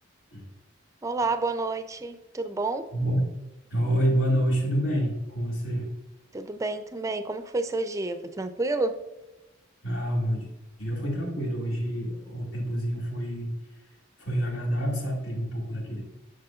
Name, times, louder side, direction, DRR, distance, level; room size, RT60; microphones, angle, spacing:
voice 1, 1.0-2.9 6.3-9.0, right 3 dB, 15° right, 9 dB, 0.4 m, -29 dB
voice 2, 3.7-5.9 9.8-10.5 10.8-13.5 14.2-16.0, equal, 75° left, -4 dB, 2.0 m, -27 dB
7.7 x 6.6 x 2.4 m, 1.0 s
head